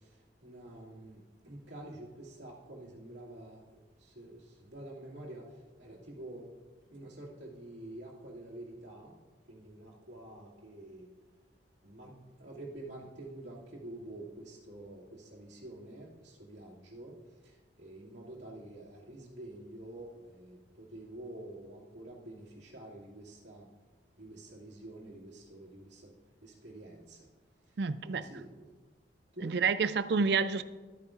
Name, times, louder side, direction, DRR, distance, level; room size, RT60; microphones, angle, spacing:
voice 1, 0.0-6.5 6.9-9.1 9.5-11.1 11.8-23.7 24.2-27.3 27.7-27.8 28.0-28.6 29.3-29.6, right 1 dB, 85° right, -4 dB, 2.4 m, -48 dB
voice 2, 27.8-28.3 29.4-30.6, right 5 dB, 70° right, 14 dB, 0.4 m, -29 dB
13.0 x 8.9 x 2.5 m, 1.3 s
head